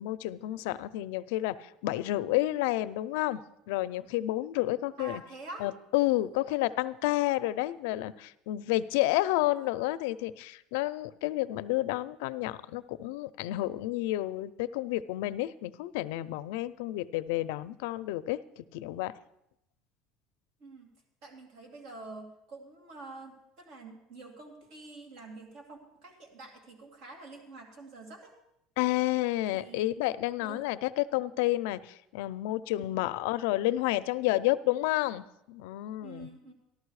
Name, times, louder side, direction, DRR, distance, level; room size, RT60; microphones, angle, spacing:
voice 1, 0.0-5.2 5.6-19.1 28.8-36.3, left 16 dB, 80° left, 14 dB, 0.5 m, -30 dB
voice 2, 5.0-5.7 9.5-9.7 10.1-10.2 20.6-20.9 21.2-28.3 29.5-29.9 30.4-30.6 32.8-33.0 36.0-36.5, right 2 dB, 55° right, 2 dB, 2.6 m, -47 dB
14.0 x 12.0 x 4.8 m, 0.80 s
cardioid pair, 170°, 0 cm